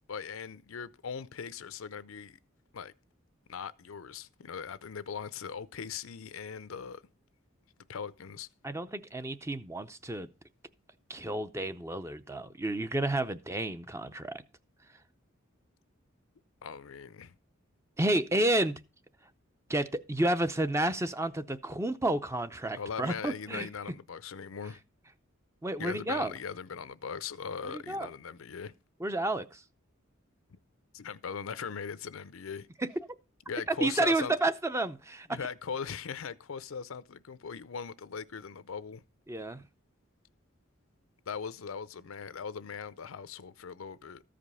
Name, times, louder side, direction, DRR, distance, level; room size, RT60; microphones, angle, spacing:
voice 1, 0.1-2.4 2.7-2.9 3.5-7.0 7.9-8.5 16.6-17.3 22.8-24.8 25.8-28.7 30.5-30.6 30.9-32.7 33.5-34.3 35.3-39.0 41.3-44.2, left 6 dB, 85° left, 0.6 m, -40 dB
voice 2, 8.6-10.3 11.1-14.4 18.0-18.7 19.7-23.7 25.6-26.3 27.7-28.1 29.0-29.6 32.8-32.9 33.8-35.3 39.3-39.6, right 1 dB, 15° right, 0.5 m, -30 dB
14.0 x 5.1 x 5.5 m
head